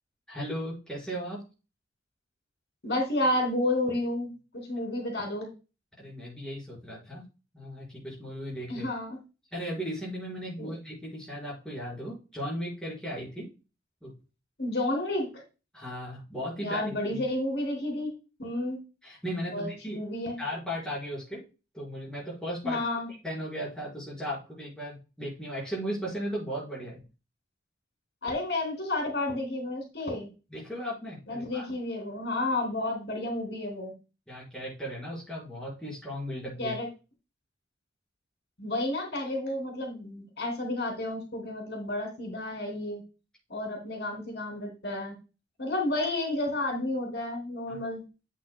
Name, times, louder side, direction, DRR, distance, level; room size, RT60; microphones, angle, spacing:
voice 1, 0.3-1.4 6.0-7.2 7.5-8.9 9.5-13.5 14.0-14.1 15.7-17.2 19.0-20.0 20.4-21.4 21.7-22.8 23.2-27.0 30.5-31.7 34.3-36.7 47.7-47.8, equal, 5° left, -6 dB, 4.9 m, -36 dB
voice 2, 2.8-5.5 8.7-9.2 10.6-10.7 14.6-15.3 16.6-18.1 18.4-18.8 19.5-20.4 22.6-23.1 28.2-30.3 31.3-33.9 36.6-36.9 38.6-43.0 43.5-45.2 45.6-48.0, left 1 dB, 70° left, 1 dB, 3.1 m, -31 dB
8.6 x 8.4 x 2.2 m, 0.31 s
head